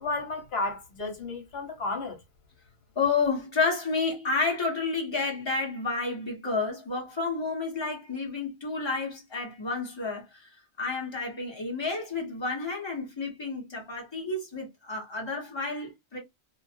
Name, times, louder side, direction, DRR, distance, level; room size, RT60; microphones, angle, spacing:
voice 1, 0.0-2.2, left 2 dB, 65° left, 1.2 m, -32 dB
voice 2, 2.9-16.2, left 4 dB, 25° left, 0.9 m, -30 dB
2.5 x 2.1 x 2.5 m
omnidirectional pair, 1.1 m